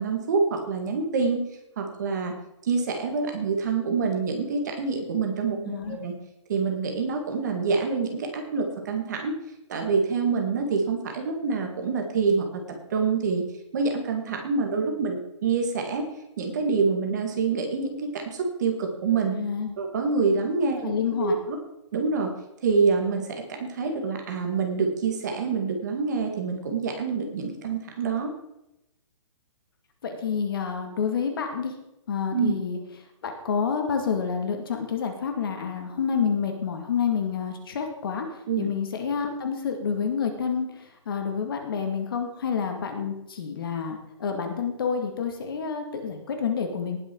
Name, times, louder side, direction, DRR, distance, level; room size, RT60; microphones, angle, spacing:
voice 1, 0.0-1.4 1.8-2.3 2.7-6.1 6.5-9.4 9.7-12.6 12.9-13.4 13.7-16.0 16.4-19.4 19.8-21.6 21.9-22.3 22.6-23.3 23.6-28.3 32.3-32.5 38.5-38.7, right 4 dB, 35° right, 3 dB, 2.2 m, -26 dB
voice 2, 5.6-6.0 19.3-19.7 20.6-21.4 30.0-31.7 32.1-32.8 33.2-38.3 38.6-47.0, left 6 dB, 45° left, 4 dB, 2.2 m, -28 dB
19.0 x 6.7 x 4.7 m, 0.88 s
hypercardioid pair, 175°, 16 cm